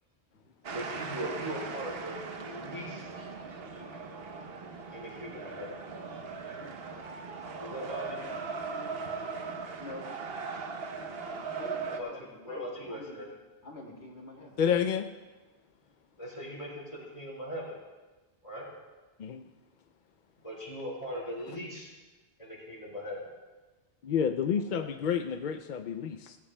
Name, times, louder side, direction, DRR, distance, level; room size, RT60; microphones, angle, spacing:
sound 1, 0.6-12.0, right 4 dB, 65° right, 1.1 m, -39 dB
voice 1, 0.7-3.1 4.9-5.7 7.6-8.3 11.8-13.3 16.2-17.8 18.4-18.7 20.4-21.9 22.4-23.2 24.7-24.8, equal, 30° left, -5 dB, 4.6 m, -39 dB
voice 2, 11.6-13.2 13.6-14.6, left 2 dB, 80° left, -2 dB, 2.5 m, -45 dB
voice 3, 14.6-15.1 19.2-19.4 24.0-26.4, left 7 dB, 60° left, 7 dB, 0.6 m, -29 dB
17.0 x 16.0 x 2.2 m, 1.2 s
omnidirectional pair, 1.1 m